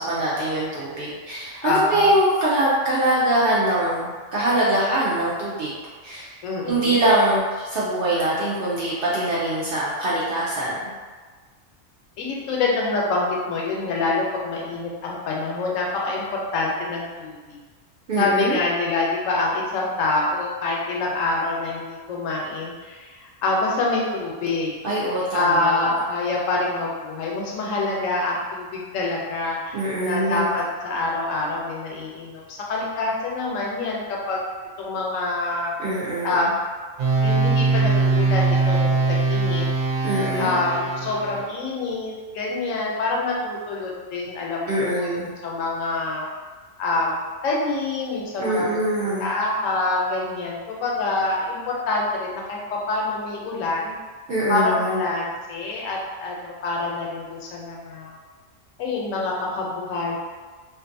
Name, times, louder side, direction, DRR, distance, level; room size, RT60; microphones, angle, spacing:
voice 1, 0.0-5.7 6.0-6.3 6.7-10.8 18.1-18.6 24.8-25.9 29.7-30.5 35.8-36.5 40.0-40.5 44.7-45.3 48.4-49.3 54.3-55.0, right 1 dB, 65° right, -7 dB, 0.6 m, -23 dB
voice 2, 1.6-2.1 6.4-7.0 12.2-17.6 18.2-29.8 30.1-34.4 34.8-35.7 36.2-36.6 37.2-40.0 40.4-46.3 46.8-48.8 49.2-53.9 54.5-58.2 58.8-60.1, left 3 dB, 85° left, -3 dB, 1.0 m, -26 dB
sound 1, 37.0-41.4, right 3 dB, 80° right, 1.0 m, -21 dB
2.5 x 2.4 x 2.6 m, 1.4 s
omnidirectional pair, 1.3 m